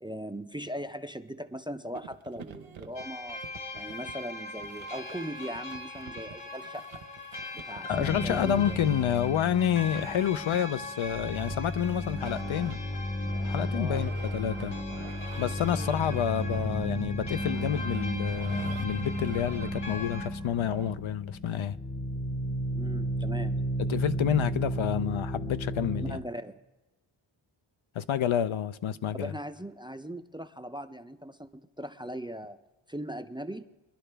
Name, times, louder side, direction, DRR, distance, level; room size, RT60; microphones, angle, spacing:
voice 1, 0.0-3.4 3.7-6.8 7.5-8.8 13.7-14.1 16.1-16.2 22.8-23.6 26.1-26.6 29.2-32.6 32.9-33.7, equal, 10° right, 0.5 m, -39 dB
sound 1, 1.9-20.9, right 7 dB, 65° right, 0.9 m, -48 dB
sound 2, 3.0-20.3, left 2 dB, 55° left, 2.0 m, -42 dB
voice 2, 7.9-12.8 13.4-14.7 15.4-21.8 23.9-26.2 27.9-29.3, left 9 dB, 75° left, 0.6 m, -29 dB
sound 3, 7.9-10.7 11.0-26.1, equal, 20° left, 0.8 m, -33 dB
23.0 x 11.0 x 3.4 m
wide cardioid pair, 110°, 49 cm